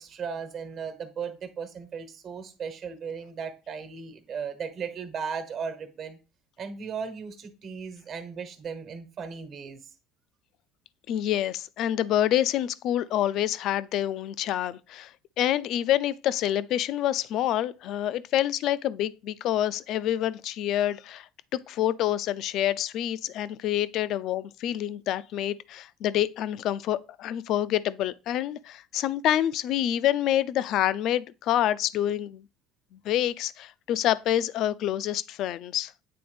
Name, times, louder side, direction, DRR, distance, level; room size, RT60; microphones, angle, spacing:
voice 1, 0.0-6.2 6.6-9.8, right 6 dB, 45° right, 1.2 m, -36 dB
voice 2, 11.1-32.4 32.9-35.9, left 12 dB, 60° left, 0.4 m, -27 dB
8.6 x 3.5 x 3.4 m
supercardioid pair, 110°, 0 cm